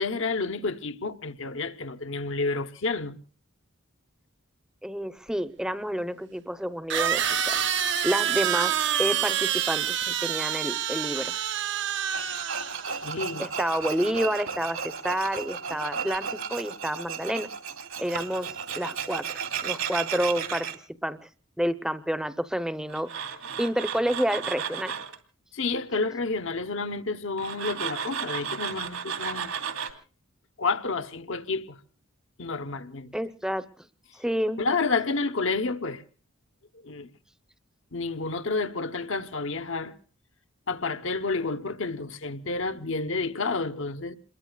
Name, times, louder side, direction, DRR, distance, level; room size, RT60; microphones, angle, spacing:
voice 1, 0.0-3.2 12.9-13.5 25.5-29.5 30.6-31.8 32.4-33.1 34.6-36.0 36.8-37.1 37.9-39.9 40.7-44.1, left 3 dB, 65° left, 1.0 m, -30 dB
voice 2, 4.8-7.6 8.0-11.4 13.4-17.5 18.0-20.7 21.0-21.3 21.6-23.3 23.6-24.9 33.1-33.6 34.2-34.6, equal, 5° right, 0.7 m, -29 dB
sound 1, 5.3-5.4 6.9-13.0, right 9 dB, 55° right, 0.8 m, -27 dB
Tools, 12.1-20.7 22.9-25.2 27.4-29.9, right 6 dB, 80° right, 2.8 m, -34 dB
28.0 x 22.0 x 2.3 m
head